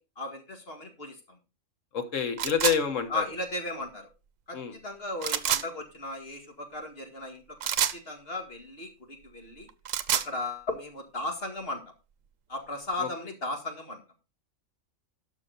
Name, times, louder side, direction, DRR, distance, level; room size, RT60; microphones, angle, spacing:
voice 1, 0.0-1.4 3.1-4.1 4.5-4.6 4.8-7.7 8.1-8.9 9.2-9.7 10.1-11.8 12.5-14.0, left 2 dB, 50° left, 3 dB, 2.2 m, -36 dB
voice 2, 1.9-3.2 4.5-4.7 13.0-13.1, left 7 dB, 75° left, 7 dB, 1.7 m, -28 dB
sound 1, 2.4-2.8 5.2-5.6 7.6-8.0 9.7-10.3, right 9 dB, 90° right, 1.1 m, -27 dB
12.5 x 5.9 x 4.0 m, 0.30 s
omnidirectional pair, 1.3 m